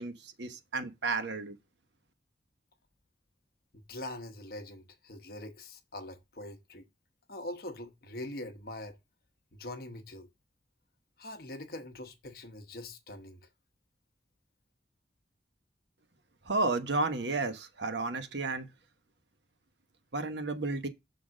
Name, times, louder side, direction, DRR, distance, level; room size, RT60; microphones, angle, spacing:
voice 1, 0.0-1.6 16.4-18.7 20.1-20.9, right 3 dB, 75° right, 1.1 m, -32 dB
voice 2, 3.7-6.9 7.3-9.0 9.5-10.3 11.2-13.4, left 1 dB, 55° left, 1.1 m, -43 dB
6.8 x 4.1 x 6.2 m
head